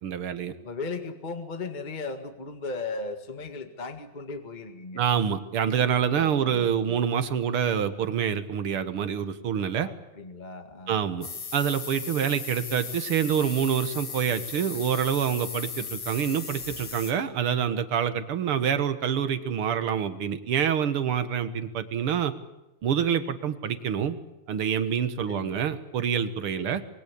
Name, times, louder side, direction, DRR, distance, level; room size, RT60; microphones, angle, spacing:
voice 1, 0.0-0.5 4.9-9.9 10.9-22.3 22.8-24.2 24.5-26.8, right 8 dB, 55° right, 11 dB, 1.6 m, -26 dB
voice 2, 0.6-5.0 6.2-7.0 9.8-11.3 25.3-25.6 26.6-26.8, left 3 dB, 25° left, 7 dB, 1.1 m, -37 dB
sound 1, 11.2-17.1, left 5 dB, 50° left, 4.4 m, -37 dB
25.5 x 22.0 x 8.5 m, 0.96 s
omnidirectional pair, 4.0 m